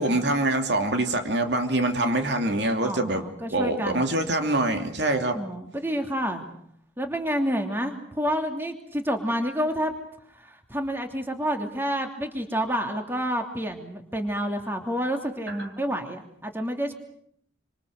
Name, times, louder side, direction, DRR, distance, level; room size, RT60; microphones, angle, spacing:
voice 1, 0.0-3.2 3.5-5.4 15.5-15.7, right 2 dB, 70° right, 5 dB, 2.7 m, -25 dB
voice 2, 2.8-4.0 5.3-6.4 7.0-9.9 10.4-16.9, equal, 10° right, 4 dB, 2.8 m, -29 dB
27.0 x 26.5 x 6.5 m, 0.67 s
head